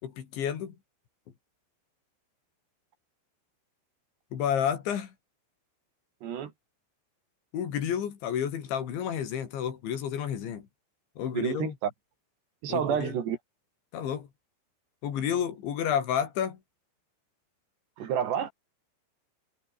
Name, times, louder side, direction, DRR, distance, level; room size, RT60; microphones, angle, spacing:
voice 1, 0.0-0.8 4.3-5.1 7.5-10.7 11.2-11.7 12.7-13.2 13.9-14.3 15.0-16.6, left 9 dB, 70° left, 5.3 m, -30 dB
voice 2, 6.2-6.5 11.3-11.9 12.6-13.4 18.0-18.5, right 9 dB, 65° right, 4.6 m, -29 dB
omnidirectional pair, 5.5 m